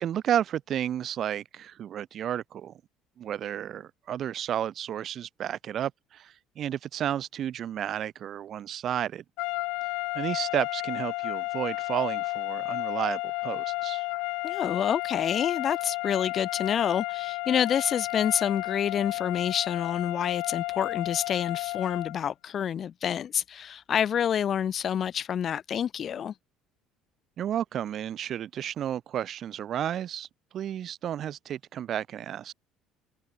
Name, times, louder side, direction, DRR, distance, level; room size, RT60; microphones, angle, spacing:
voice 1, 0.0-2.7 3.2-9.2 10.1-14.1 27.4-30.3 30.5-32.5, right 10 dB, 50° right, 0.4 m, -32 dB
sound 1, 9.4-22.2, left 26 dB, 85° left, 1.0 m, -32 dB
voice 2, 14.4-26.3, left 8 dB, 45° left, 1.6 m, -28 dB
cardioid pair, 115°, 0 cm